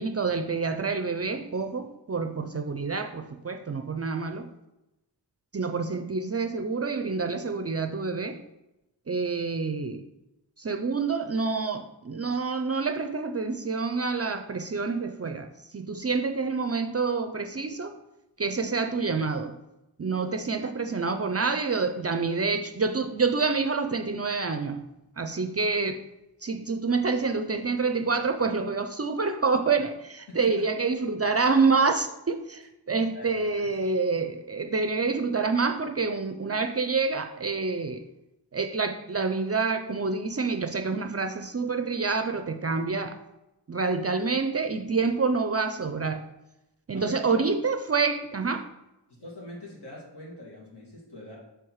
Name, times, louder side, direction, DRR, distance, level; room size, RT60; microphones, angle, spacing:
voice 1, 0.0-4.5 5.5-8.4 9.1-10.0 10.6-15.5 15.7-17.9 18.4-19.6 20.0-24.8 25.2-26.0 26.4-38.0 38.5-43.2 43.7-46.2 46.9-48.7, right 4 dB, 35° right, 7 dB, 0.4 m, -27 dB
voice 2, 30.3-30.7 32.9-33.9 46.9-47.5 49.1-51.4, left 2 dB, 65° left, -4 dB, 2.1 m, -44 dB
6.4 x 3.3 x 4.6 m, 0.95 s
wide cardioid pair, 65°, 42 cm